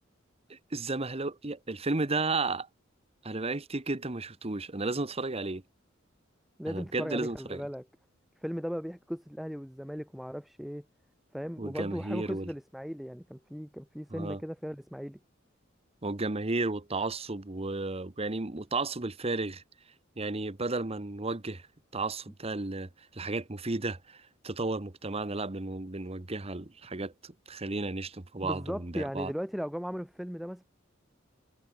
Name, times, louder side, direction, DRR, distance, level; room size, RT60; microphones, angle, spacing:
voice 1, 0.5-2.7 3.2-5.6 6.7-7.6 11.6-12.5 14.1-14.4 16.0-19.6 20.2-21.7 21.9-29.3, right 3 dB, 30° right, 1.1 m, -33 dB
voice 2, 6.6-7.9 8.4-10.8 11.3-15.2 28.4-30.6, equal, ahead, 0.6 m, -37 dB
head